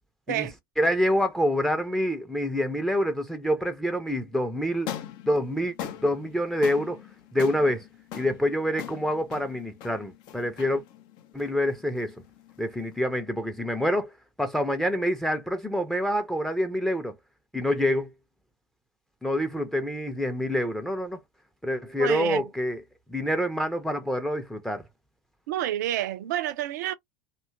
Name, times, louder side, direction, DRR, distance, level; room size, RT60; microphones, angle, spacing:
voice 1, 0.8-4.9 5.3-7.0 7.3-7.8 8.1-10.8 11.3-12.2 12.6-17.1 17.5-18.1 19.2-21.2 21.6-22.8 23.1-24.8, equal, 5° left, 0.5 m, -26 dB
sound 1, 4.7-13.0, left 10 dB, 45° left, 0.5 m, -41 dB
voice 2, 22.0-22.4 25.5-27.0, right 12 dB, 60° right, 0.4 m, -29 dB
2.7 x 2.2 x 2.4 m
figure-of-eight pair, 70°, 10 cm